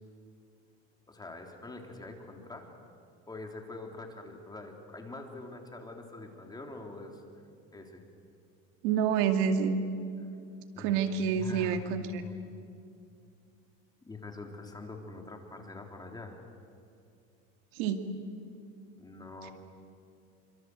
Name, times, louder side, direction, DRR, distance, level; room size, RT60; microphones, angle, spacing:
voice 1, 1.1-2.7 3.3-7.2 7.7-8.0 10.7-12.3 14.1-16.4 19.0-19.5, left 3 dB, 15° left, 2 dB, 3.8 m, -44 dB
voice 2, 8.8-9.8 10.8-12.2 17.8-18.0, right 7 dB, 80° right, 6 dB, 2.3 m, -28 dB
27.5 x 25.0 x 8.1 m, 2.4 s
supercardioid pair, 120°, 31 cm